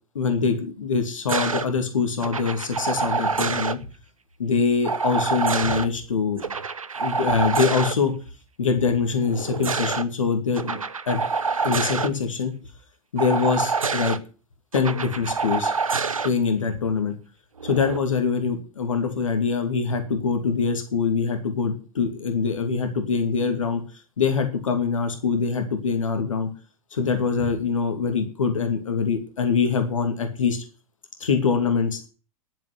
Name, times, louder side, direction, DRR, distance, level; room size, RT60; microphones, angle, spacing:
voice 1, 0.1-3.8 4.4-6.4 7.0-8.1 8.6-10.8 11.1-11.4 11.6-12.5 13.1-14.2 14.7-15.7 16.2-17.2 17.6-23.8 24.2-26.5 26.9-30.6 31.2-32.1, left 5 dB, 70° left, 6 dB, 2.5 m, -24 dB
sound 1, 1.3-1.7 2.2-3.8 4.8-5.9 6.4-7.9 9.2-10.0 10.6-12.1 13.2-14.2 14.7-16.3 17.6-18.0, right 5 dB, 75° right, 1.0 m, -26 dB
11.0 x 7.6 x 9.8 m, 0.36 s
figure-of-eight pair, 95°, 18 cm